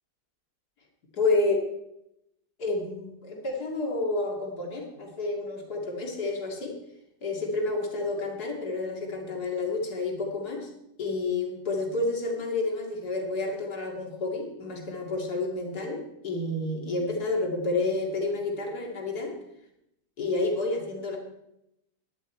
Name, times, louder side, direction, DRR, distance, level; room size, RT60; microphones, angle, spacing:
voice 1, 1.1-1.6 2.6-6.8 7.2-10.7 11.0-19.4 20.2-21.2, left 2 dB, 65° left, 0 dB, 3.0 m, -30 dB
16.5 x 11.0 x 4.5 m, 0.84 s
omnidirectional pair, 1.8 m